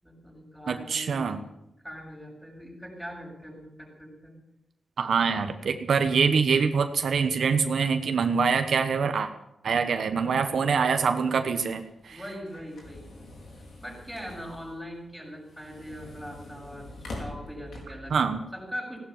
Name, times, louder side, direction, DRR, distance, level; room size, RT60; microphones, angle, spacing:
voice 1, 0.0-1.4 1.8-4.4 10.1-10.6 12.1-13.1 13.8-18.2 18.5-19.0, equal, 5° left, -1 dB, 6.9 m, -41 dB
voice 2, 0.7-1.4 5.0-9.3 9.6-12.2 18.1-18.4, right 5 dB, 75° right, 7 dB, 1.2 m, -25 dB
sound 1, 11.6-18.2, left 2 dB, 75° left, 4.7 m, -45 dB
16.5 x 11.5 x 7.4 m, 0.85 s
wide cardioid pair, 95°, 0 cm